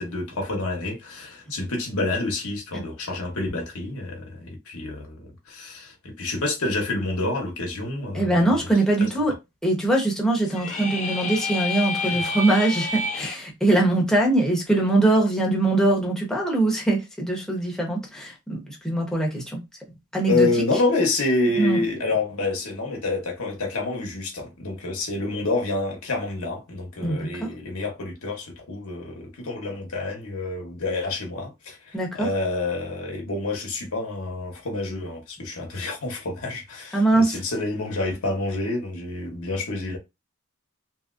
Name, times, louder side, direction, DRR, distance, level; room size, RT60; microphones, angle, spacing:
voice 1, 0.0-8.6 9.0-9.1 12.0-12.2 20.3-40.0, left 2 dB, 70° left, 0.9 m, -28 dB
voice 2, 8.1-9.3 9.6-19.6 20.1-20.5 21.6-21.8 27.0-27.5 31.9-32.3 36.9-37.4, right 2 dB, 5° left, 0.8 m, -22 dB
sound 1, 10.4-13.4, left 3 dB, 35° left, 0.5 m, -29 dB
2.8 x 2.8 x 2.4 m
head